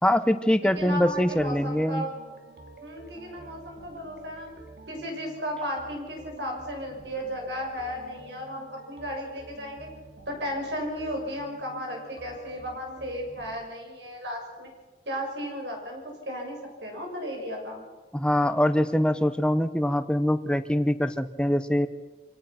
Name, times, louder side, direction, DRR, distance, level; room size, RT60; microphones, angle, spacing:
voice 1, 0.0-2.0 18.1-21.9, left 1 dB, 5° left, 11 dB, 0.9 m, -23 dB
voice 2, 0.6-2.1 2.8-4.5 4.9-9.9 10.3-14.7 15.0-17.8, equal, 85° right, 1 dB, 6.6 m, -35 dB
sound 1, 0.8-13.6, right 3 dB, 60° right, 2.7 m, -48 dB
26.0 x 17.5 x 5.9 m, 1.3 s
head